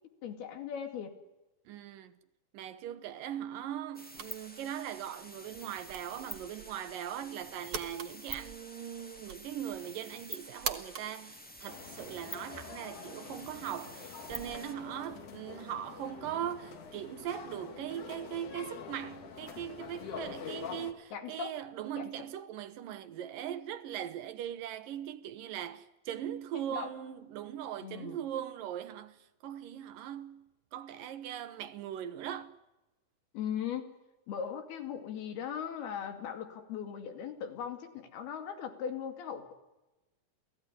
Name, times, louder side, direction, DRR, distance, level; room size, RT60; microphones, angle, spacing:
voice 1, 0.2-1.2 21.1-21.6 22.0-22.1 26.5-26.9 27.8-28.2 33.3-33.9 34.3-39.5, left 8 dB, 90° left, 4.4 m, -39 dB
voice 2, 1.7-2.1 2.5-32.5, right 10 dB, 70° right, 2.5 m, -40 dB
sound 1, 3.9-14.7, right 1 dB, 10° left, 0.6 m, -48 dB
sound 2, 4.1-12.2, right 7 dB, 55° right, 1.8 m, -45 dB
sound 3, 11.7-20.9, left 7 dB, 55° left, 3.3 m, -46 dB
29.0 x 17.5 x 10.0 m
omnidirectional pair, 4.3 m